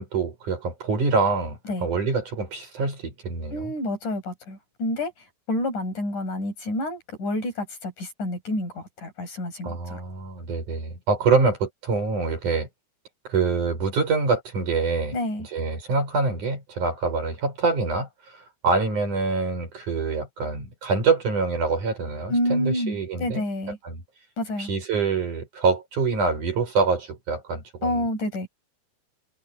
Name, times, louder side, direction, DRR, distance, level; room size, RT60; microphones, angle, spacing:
voice 1, 0.0-3.7 9.6-12.7 13.3-15.2 15.5-18.1 18.6-23.4 23.8-24.0 24.6-28.1, right 4 dB, 70° right, 8.7 m, -25 dB
voice 2, 3.5-5.1 5.5-10.0 15.1-15.5 22.3-23.8 24.4-24.7 27.8-28.5, left 1 dB, 70° left, 9.5 m, -28 dB
omnidirectional pair, 3.7 m